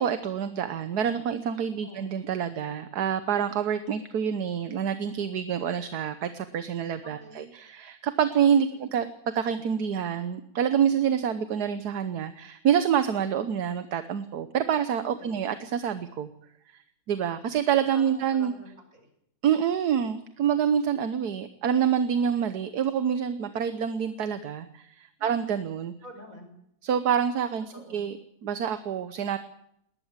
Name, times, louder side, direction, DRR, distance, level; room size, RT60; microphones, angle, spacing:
voice 1, 0.0-9.1 9.3-16.3 17.1-18.5 19.4-25.9 26.8-29.4, right 8 dB, 80° right, 11 dB, 1.6 m, -27 dB
voice 2, 7.0-7.5 8.7-8.9 15.2-15.4 17.9-19.1 25.2-25.3 26.0-26.6 27.7-28.0, right 1 dB, 55° right, 5 dB, 5.6 m, -47 dB
20.0 x 19.5 x 7.4 m, 0.74 s
omnidirectional pair, 1.7 m